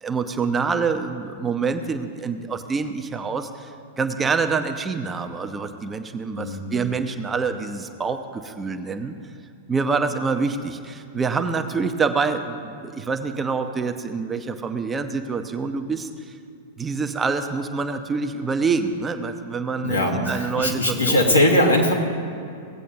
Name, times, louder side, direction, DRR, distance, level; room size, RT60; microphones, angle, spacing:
voice 1, 0.0-9.1 9.7-16.3 16.8-21.2, right 4 dB, 15° right, 6 dB, 0.6 m, -26 dB
voice 2, 19.8-21.9, left 1 dB, 90° left, -1 dB, 1.6 m, -20 dB
17.5 x 8.3 x 2.8 m, 2.5 s
figure-of-eight pair, 95°, 0 cm